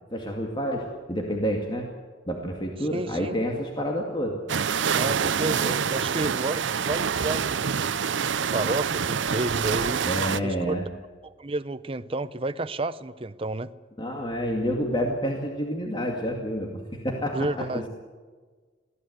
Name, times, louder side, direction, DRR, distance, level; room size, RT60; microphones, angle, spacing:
voice 1, 0.1-1.9 2.3-4.4 5.5-5.7 10.0-10.9 14.0-17.9, equal, 25° left, 1 dB, 2.2 m, -29 dB
voice 2, 2.8-3.4 4.9-7.9 8.5-10.1 10.4-10.7 11.2-13.7 17.3-17.8, right 2 dB, 30° right, 12 dB, 0.7 m, -31 dB
sound 1, 4.5-10.4, right 7 dB, 75° right, 0.6 m, -26 dB
22.0 x 16.5 x 8.1 m, 1.4 s
head